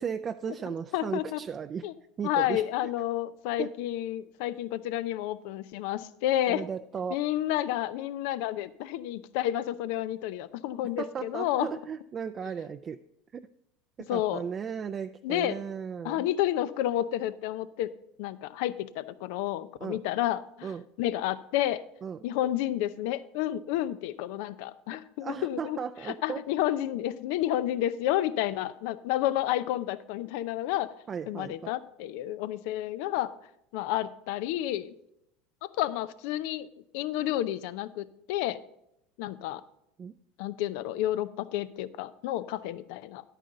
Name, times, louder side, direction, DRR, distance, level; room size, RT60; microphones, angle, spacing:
voice 1, 0.0-1.8 2.2-2.9 3.6-3.7 6.5-7.2 11.0-13.0 13.3-13.4 14.0-16.3 19.8-20.0 20.6-20.9 22.0-22.2 25.2-26.4 31.1-31.7 40.0-40.1, right 7 dB, 35° right, 8 dB, 0.4 m, -36 dB
voice 2, 0.9-1.4 1.8-1.9 2.2-6.6 7.1-11.7 14.1-14.4 15.2-15.6 16.0-17.9 18.2-20.7 21.0-21.8 22.2-30.9 31.3-33.3 33.7-34.9 35.8-36.7 36.9-38.6 39.2-39.6 40.4-43.2, left 13 dB, 70° left, 15 dB, 0.6 m, -30 dB
10.5 x 9.1 x 3.8 m, 0.79 s
hypercardioid pair, 95°, 0 cm